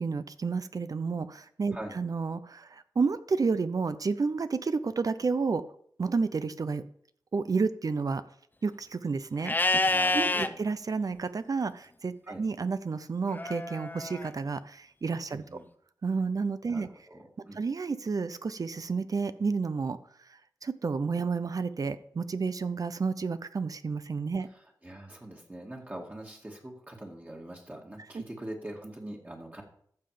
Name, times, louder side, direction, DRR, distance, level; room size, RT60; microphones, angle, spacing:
voice 1, 0.0-5.6 6.0-6.8 7.3-8.2 8.6-9.6 9.8-15.6 16.0-16.9 17.6-24.5 28.1-28.2, right 4 dB, 55° right, 13 dB, 0.6 m, -31 dB
Livestock farm animals working animals, 9.4-10.5 13.3-14.3, left 2 dB, 25° left, 0.8 m, -27 dB
voice 2, 9.9-10.6 12.3-12.4 15.5-15.6 16.7-17.6 24.8-29.6, right 1 dB, 25° right, -1 dB, 2.2 m, -43 dB
14.0 x 5.9 x 5.0 m, 0.63 s
cardioid pair, 65°, 7 cm